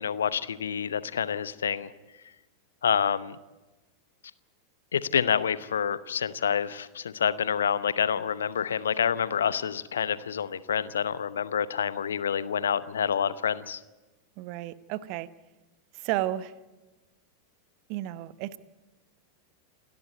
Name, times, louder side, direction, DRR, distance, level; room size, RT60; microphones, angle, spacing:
voice 1, 0.0-1.9 2.8-3.4 4.9-13.8, left 8 dB, 65° left, 16 dB, 0.9 m, -28 dB
voice 2, 14.4-15.3 15.9-16.5 17.9-18.6, right 15 dB, 45° right, 15 dB, 0.9 m, -32 dB
28.5 x 12.0 x 9.3 m, 1.1 s
figure-of-eight pair, 90°, 0 cm